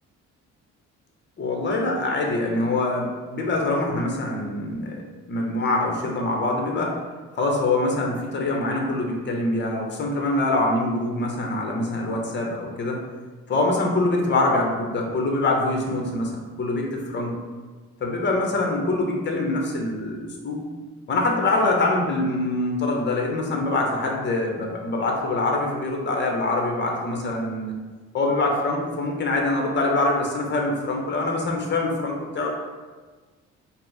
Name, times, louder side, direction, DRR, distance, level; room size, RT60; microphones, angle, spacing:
voice 1, 1.4-5.0 5.3-7.0 7.3-13.0 13.5-16.3 16.6-17.3 18.0-20.6 21.1-27.7 28.1-32.5, left 2 dB, 35° left, 1 dB, 0.8 m, -24 dB
4.0 x 2.0 x 3.9 m, 1.4 s
cardioid pair, 90°, 30 cm